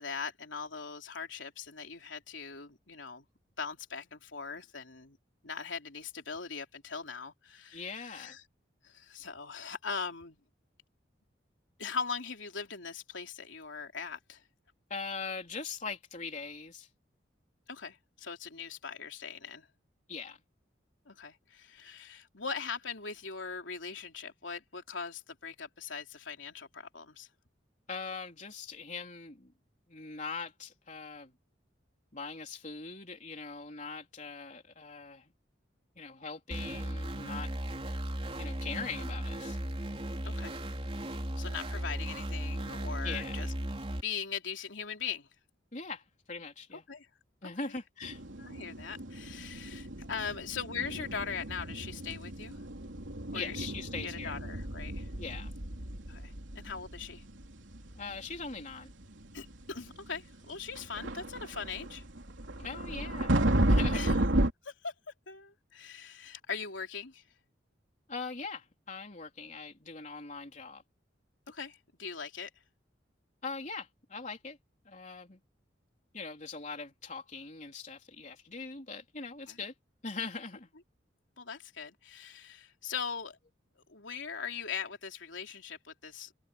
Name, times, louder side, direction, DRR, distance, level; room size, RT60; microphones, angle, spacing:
voice 1, 0.0-3.2 3.6-5.2 5.4-8.4 8.8-10.4 11.8-14.4 17.7-19.7 21.1-27.3 40.2-40.6 41.4-43.5 44.0-45.3 46.9-47.1 47.4-47.7 48.4-52.6 53.3-53.6 54.0-55.1 56.1-57.2 59.3-62.0 63.9-64.1 64.6-64.9 65.3-67.2 71.5-72.5 79.5-79.6 81.4-83.4 83.9-86.3, left 6 dB, 90° left, 3.3 m, -40 dB
voice 2, 7.7-8.4 14.9-16.9 20.1-20.4 27.9-29.5 29.9-31.3 32.1-35.3 36.0-37.5 38.4-39.6 43.0-43.4 45.7-46.8 47.4-48.2 50.2-50.3 53.3-54.3 55.2-55.5 58.0-58.9 62.6-63.3 63.7-64.2 68.1-70.8 73.4-74.6 74.9-75.4 76.1-79.7 80.0-80.7, left 4 dB, 40° left, 3.6 m, -41 dB
sound 1, 36.5-44.0, equal, 30° right, 3.6 m, -36 dB
sound 2, 48.0-64.5, right 1 dB, 85° right, 3.2 m, -33 dB
head